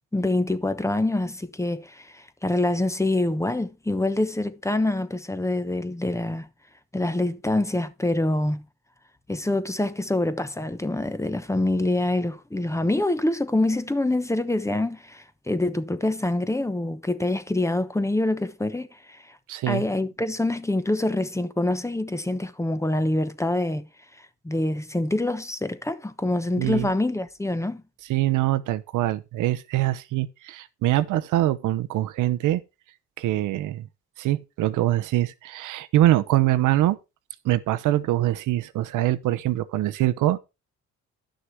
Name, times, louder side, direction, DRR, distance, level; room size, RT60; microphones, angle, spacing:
voice 1, 0.1-6.5 6.9-8.6 9.3-19.4 19.7-23.9 24.4-27.8, left 2 dB, 10° left, 1.0 m, -25 dB
voice 2, 19.5-19.8 26.6-26.9 28.1-32.6 33.2-33.9 34.2-37.0 37.4-40.4, right 14 dB, 85° right, 0.9 m, -23 dB
11.5 x 6.5 x 4.5 m
cardioid pair, 90°, 30 cm